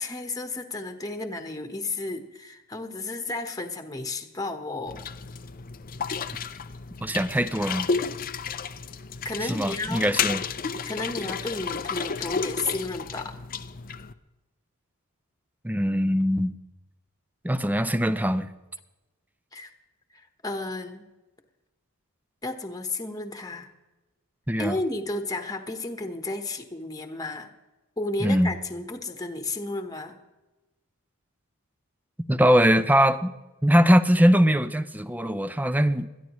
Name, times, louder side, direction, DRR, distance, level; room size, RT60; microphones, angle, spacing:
voice 1, 0.0-5.0 9.2-10.1 10.8-13.4 19.5-19.7 20.1-21.0 22.4-23.7 24.6-27.5 28.0-30.2, left 2 dB, 15° left, 1.2 m, -32 dB
sound 1, 4.9-14.1, left 5 dB, 40° left, 0.6 m, -32 dB
voice 2, 7.0-7.9 9.4-10.4 15.6-16.6 17.4-18.5 24.5-24.8 28.2-28.5 32.3-33.3 33.6-36.1, equal, 10° right, 0.6 m, -21 dB
21.0 x 13.5 x 3.1 m
head